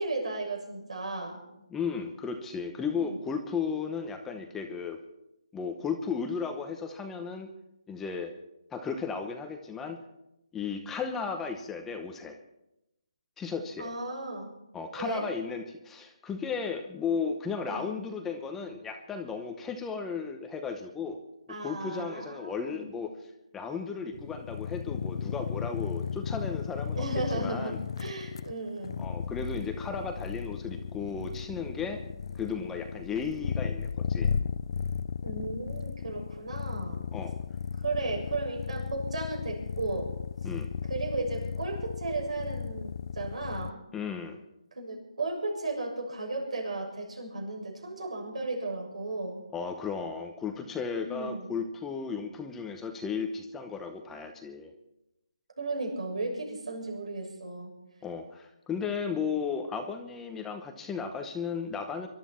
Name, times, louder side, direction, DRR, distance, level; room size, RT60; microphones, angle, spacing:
voice 1, 0.0-1.4 2.9-3.2 13.8-14.5 15.0-15.3 17.7-17.8 21.5-22.9 26.9-29.0 35.2-37.0 37.8-40.1 40.9-43.8 44.8-49.4 51.0-51.5 55.6-57.7, right 3 dB, 75° right, 1 dB, 6.9 m, -35 dB
voice 2, 1.7-5.0 5.5-7.5 7.9-8.3 8.7-10.0 10.5-12.4 13.4-13.9 14.7-21.2 21.6-27.0 27.3-27.8 29.0-32.0 32.3-34.3 37.1-37.3 40.4-40.7 43.9-44.4 49.5-54.7 58.0-62.1, left 5 dB, 5° left, 5 dB, 0.8 m, -35 dB
sound 1, 24.1-43.7, left 6 dB, 45° left, 0.4 m, -35 dB
25.0 x 12.5 x 4.4 m, 0.89 s
hypercardioid pair, 160°, 4 cm